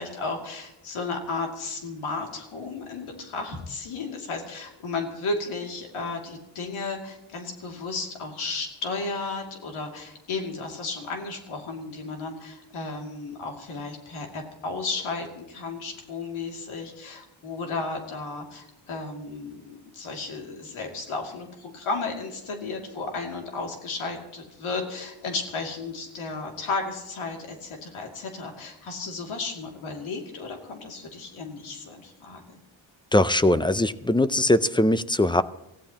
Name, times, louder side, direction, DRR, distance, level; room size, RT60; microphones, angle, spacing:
voice 1, 0.0-32.4, left 3 dB, 85° left, 2 dB, 2.7 m, -34 dB
voice 2, 33.1-35.4, left 1 dB, 10° left, 14 dB, 0.4 m, -21 dB
25.0 x 15.5 x 3.0 m, 0.90 s
cardioid pair, 110°, 48 cm